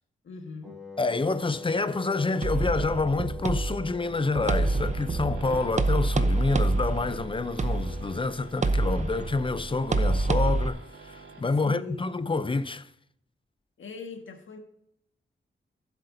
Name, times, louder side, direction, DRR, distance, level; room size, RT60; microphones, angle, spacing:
voice 1, 0.2-0.8 11.6-12.1 13.8-14.6, left 4 dB, 80° left, 1.7 m, -40 dB
Wind instrument woodwind instrument, 0.6-8.2, left 3 dB, ahead, 4.2 m, -44 dB
voice 2, 1.0-12.9, left 3 dB, 25° left, 0.6 m, -28 dB
sound 1, 2.4-10.7, right 2 dB, 35° right, 0.8 m, -27 dB
sound 2, 4.3-11.4, right 4 dB, 85° right, 3.4 m, -48 dB
15.0 x 8.1 x 2.7 m
wide cardioid pair, 85°, 20 cm